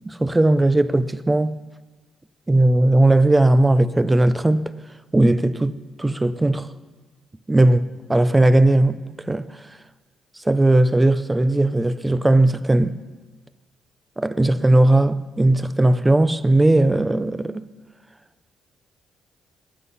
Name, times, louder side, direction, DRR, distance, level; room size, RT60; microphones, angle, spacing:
voice 1, 0.1-1.6 2.5-4.7 5.1-6.7 7.5-9.6 10.4-13.0 14.2-17.7, right 1 dB, 15° right, 0.6 m, -18 dB
21.0 x 8.2 x 5.6 m
cardioid pair, 90°, 0 cm